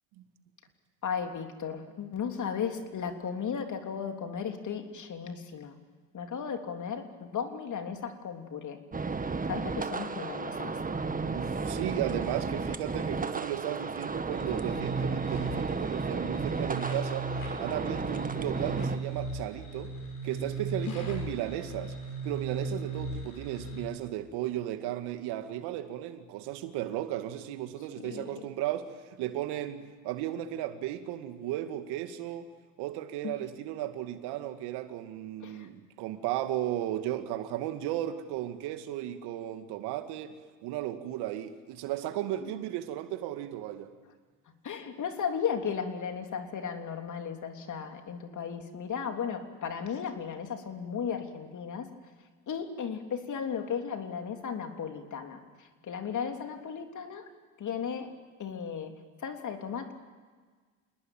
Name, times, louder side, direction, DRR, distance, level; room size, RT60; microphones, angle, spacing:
voice 1, 1.0-5.8 6.1-8.8 9.5-10.8 20.9-21.0 28.0-28.5 33.2-33.3 35.4-35.7 42.4-42.5 44.6-51.9 52.5-57.3 57.6-58.1 58.4-58.9 59.2-59.9, left 7 dB, 45° left, 5 dB, 3.4 m, -35 dB
sound 1, 8.9-19.0, right 4 dB, 20° right, 1.7 m, -33 dB
voice 2, 11.2-17.3 17.6-19.9 20.2-21.9 22.2-32.5 32.8-40.4 40.6-43.9, right 12 dB, 70° right, 9 dB, 2.1 m, -35 dB
sound 2, 14.3-23.8, right 3 dB, 90° left, 6.0 m, -37 dB
28.0 x 20.0 x 9.1 m, 1.5 s
hypercardioid pair, 70°, 41 cm